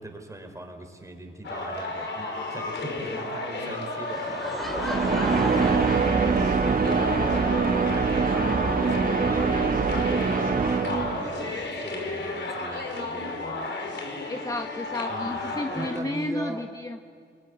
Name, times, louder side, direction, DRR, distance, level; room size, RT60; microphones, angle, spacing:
voice 1, 0.0-9.5 10.0-13.7 15.1-16.6, right 1 dB, 15° right, 4 dB, 4.6 m, -40 dB
sound 1, 1.4-16.0, left 2 dB, 75° left, 5.3 m, -33 dB
Laughter / Crowd, 4.1-6.9, equal, ahead, 3.2 m, -35 dB
sound 2, 4.6-11.5, right 5 dB, 50° right, 1.7 m, -24 dB
voice 2, 14.3-17.1, left 2 dB, 20° left, 5 dB, 1.1 m, -32 dB
27.0 x 22.5 x 9.9 m, 2.2 s
wide cardioid pair, 135°, 19 cm